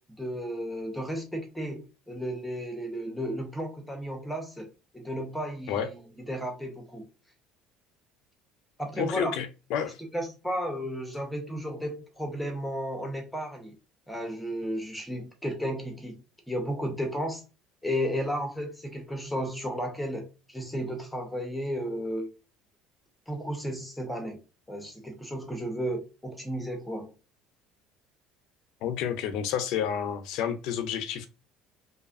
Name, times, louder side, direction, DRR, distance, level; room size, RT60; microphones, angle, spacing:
voice 1, 0.2-4.7 4.9-7.0 8.8-9.3 10.0-13.8 14.1-16.1 16.5-17.4 17.8-22.3 23.3-24.4 24.7-27.1, equal, 5° left, 0.7 m, -33 dB
voice 2, 9.0-10.0 28.8-31.3, left 8 dB, 70° left, 0.5 m, -30 dB
2.6 x 2.3 x 2.4 m
cardioid pair, 135°, 0 cm